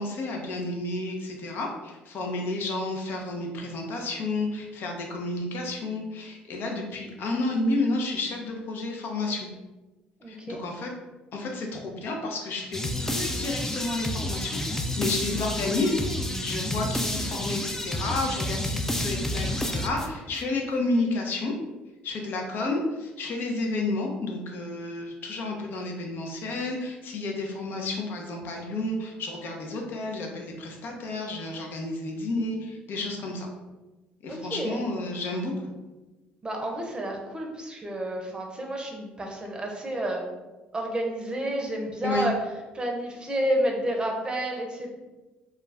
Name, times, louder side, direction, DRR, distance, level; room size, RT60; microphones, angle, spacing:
voice 1, 0.0-9.5 10.3-10.9 11.3-21.5 22.0-33.5 34.2-35.5 42.0-42.3, left 2 dB, 60° left, 1 dB, 0.6 m, -31 dB
voice 2, 10.2-10.6 34.3-34.8 36.4-40.2 40.7-42.3 42.7-44.9, right 1 dB, 20° right, 0 dB, 0.7 m, -30 dB
sound 1, 12.7-20.4, left 1 dB, 10° left, 0.4 m, -30 dB
2.4 x 2.2 x 3.2 m, 1.2 s
supercardioid pair, 70°, 4 cm